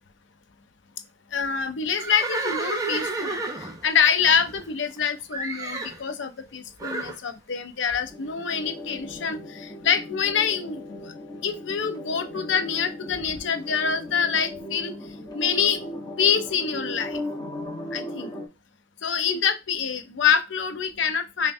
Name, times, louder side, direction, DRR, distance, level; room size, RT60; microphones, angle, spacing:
voice 1, 1.3-11.1 11.4-14.9 15.3-15.8 16.2-17.2 17.9-18.3 19.0-21.5, left 7 dB, 70° left, 0.6 m, -26 dB
Livestock farm animals working animals, 1.9-5.0 5.3-6.0 6.8-7.2, right 3 dB, 20° right, 0.5 m, -31 dB
sound 1, 8.1-18.5, left 1 dB, 20° left, 0.9 m, -37 dB
5.5 x 2.2 x 2.6 m
head